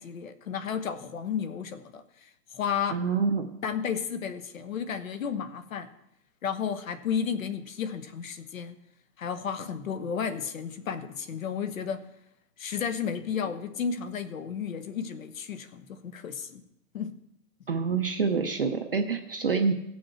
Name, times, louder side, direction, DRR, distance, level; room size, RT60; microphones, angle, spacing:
voice 1, 0.0-2.0 2.5-3.0 3.6-5.9 6.4-8.8 9.2-12.0 12.6-16.6 16.9-17.1, left 7 dB, 55° left, 11 dB, 1.2 m, -32 dB
voice 2, 2.9-3.5 17.7-19.7, right 5 dB, 40° right, 5 dB, 0.6 m, -27 dB
17.5 x 6.3 x 4.4 m, 0.82 s
hypercardioid pair, 180°, 47 cm